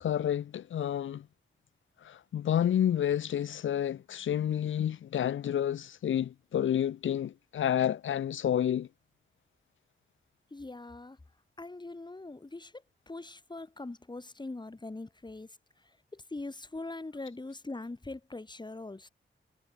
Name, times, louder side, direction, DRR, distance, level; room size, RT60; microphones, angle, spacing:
voice 1, 0.0-1.2 2.0-8.9, left 10 dB, 85° left, 0.5 m, -29 dB
voice 2, 10.5-11.2 11.6-12.7 13.1-15.5 16.1-19.1, left 2 dB, 20° left, 1.7 m, -42 dB
wide cardioid pair, 90°, 20 cm